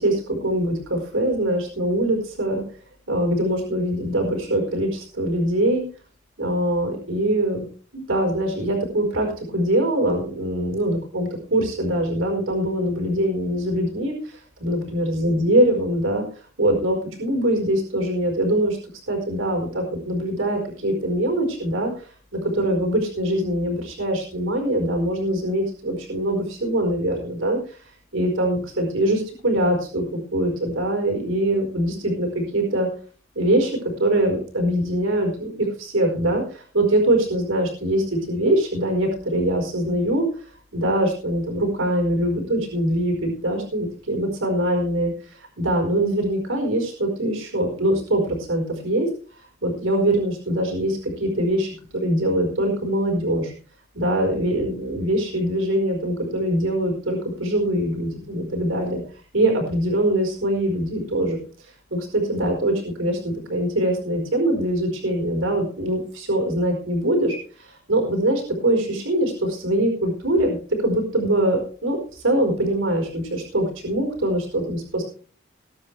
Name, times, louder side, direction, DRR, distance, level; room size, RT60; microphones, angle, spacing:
voice 1, 0.0-2.6 3.1-5.8 6.4-7.6 7.9-16.2 16.6-18.8 19.1-27.8 28.1-32.9 33.3-35.5 35.8-40.3 40.7-45.1 45.6-49.1 49.6-53.5 53.9-59.0 59.3-61.4 61.9-75.0, right 1 dB, 65° right, 2 dB, 4.7 m, -23 dB
20.5 x 9.8 x 3.3 m, 0.40 s
head